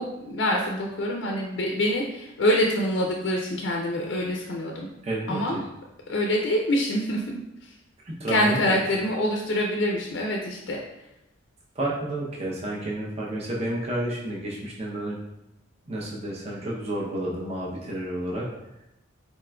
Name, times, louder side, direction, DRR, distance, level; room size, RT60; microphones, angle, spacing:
voice 1, 0.0-4.9 5.3-5.6 6.1-7.2 7.6-7.7 8.3-10.8, left 1 dB, 65° left, 0 dB, 0.4 m, -25 dB
voice 2, 5.0-5.6 8.0-8.8 11.7-15.2 15.9-18.5, right 1 dB, 30° right, -4 dB, 0.6 m, -30 dB
4.1 x 3.6 x 2.2 m, 0.90 s
head